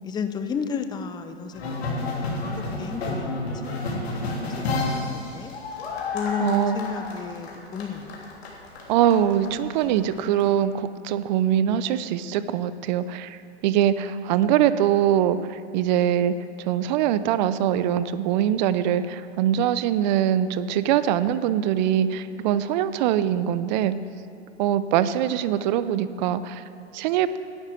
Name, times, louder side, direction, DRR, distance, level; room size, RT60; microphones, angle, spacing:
voice 1, 0.0-2.3 2.8-3.3 3.6-3.8 4.1-5.5 6.1-8.1, left 6 dB, 10° left, 8 dB, 0.7 m, -33 dB
sound 1, 1.5-10.4, left 2 dB, 65° left, 3.4 m, -31 dB
voice 2, 6.4-6.8 8.9-13.4 13.6-16.3 16.7-24.0 24.6-26.6 26.9-27.4, right 10 dB, 40° right, 14 dB, 0.7 m, -23 dB
11.5 x 9.1 x 7.5 m, 2.4 s
hypercardioid pair, 115°, 34 cm